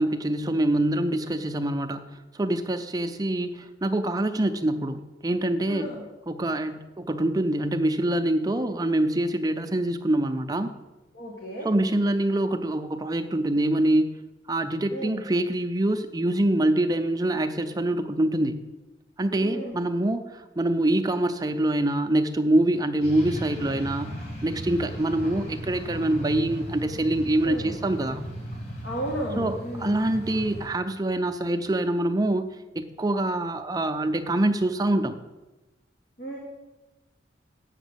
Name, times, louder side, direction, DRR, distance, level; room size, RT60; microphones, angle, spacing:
voice 1, 0.0-5.9 6.3-10.7 11.6-14.2 14.5-18.6 19.2-28.3 29.4-35.2, right 1 dB, 20° right, 8 dB, 0.5 m, -25 dB
voice 2, 5.7-6.0 11.1-11.7 14.9-15.2 19.4-19.8 27.4-27.7 28.8-30.0 36.2-36.4, right 1 dB, 80° left, -2 dB, 1.7 m, -34 dB
sound 1, 23.0-30.7, equal, 55° left, 3.7 m, -37 dB
8.1 x 6.0 x 7.9 m, 1.1 s
head